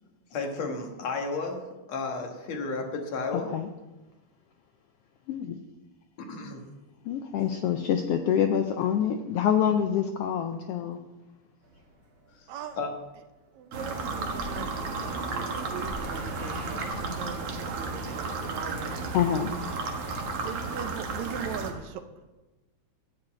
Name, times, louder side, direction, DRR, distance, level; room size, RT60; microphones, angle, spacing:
voice 1, 0.3-3.5 6.2-6.6 12.4-12.5 12.8-12.9, left 3 dB, 65° left, 3 dB, 2.5 m, -33 dB
voice 2, 3.3-3.7 5.3-5.6 7.0-11.0 19.1-19.5, left 9 dB, 85° left, 6 dB, 1.3 m, -26 dB
sound 1, 11.6-19.0, equal, 30° right, 2.6 m, -46 dB
voice 3, 13.5-19.5 20.4-22.0, right 8 dB, 75° right, 9 dB, 2.0 m, -40 dB
sound 2, 13.7-21.7, right 3 dB, 60° right, 2.1 m, -33 dB
13.5 x 5.1 x 8.5 m, 1.1 s
omnidirectional pair, 3.4 m